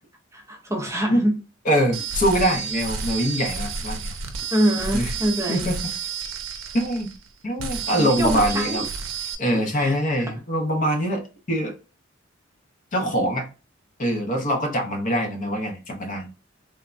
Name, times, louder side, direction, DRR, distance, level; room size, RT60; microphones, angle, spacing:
voice 1, 0.3-1.4 4.5-5.7 8.0-8.8 9.5-9.9, right 1 dB, 15° right, 1 dB, 0.5 m, -25 dB
voice 2, 1.7-4.1 4.9-5.1 5.5-5.8 6.7-7.1 7.4-8.8 9.4-11.2 11.5-11.8 12.9-13.4 14.0-16.3, equal, 40° left, 4 dB, 0.6 m, -23 dB
sound 1, 1.9-7.3 7.6-9.4, right 5 dB, 85° right, 0.5 m, -30 dB
3.3 x 2.1 x 2.4 m, 0.33 s
head